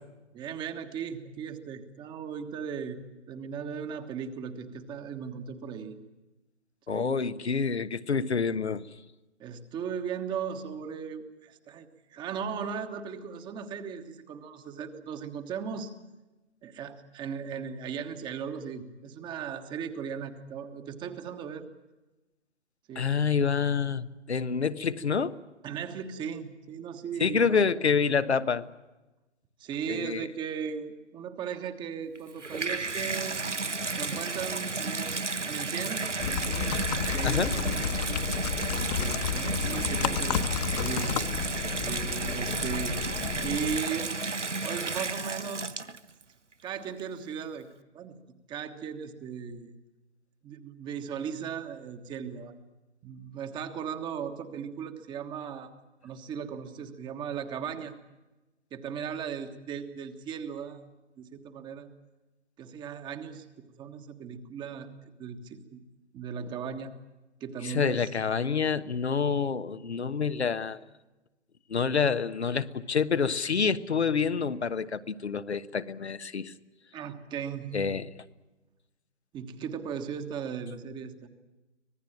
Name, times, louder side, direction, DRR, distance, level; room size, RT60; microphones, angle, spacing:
voice 1, 0.3-3.0 3.3-6.0 6.9-7.2 9.4-15.9 16.6-21.7 22.9-23.3 25.6-27.6 29.6-33.5 33.9-36.8 37.1-38.3 38.8-41.3 41.8-43.0 43.4-44.1 44.6-45.8 46.6-47.7 47.9-48.2 48.5-49.7 50.4-52.6 53.0-55.7 56.0-57.9 58.7-60.8 61.2-61.9 62.6-63.5 63.8-64.9 65.2-65.8 66.1-66.9 67.4-68.1 76.9-77.8 79.3-81.3, right 7 dB, 15° right, 8 dB, 1.4 m, -37 dB
voice 2, 6.9-8.8 22.9-25.4 27.2-28.7 29.9-30.2 37.2-37.5 67.6-70.8 71.7-76.5 77.7-78.0, left 5 dB, 70° left, 11 dB, 1.3 m, -27 dB
Water tap faucet / Bathtub (filling or washing), 32.1-46.2 47.0-47.1, right 3 dB, 85° right, 1.3 m, -32 dB
sound 1, 36.2-43.8, left 7 dB, 35° left, 1.4 m, -32 dB
25.5 x 18.5 x 8.9 m, 1.1 s
figure-of-eight pair, 130°, 35 cm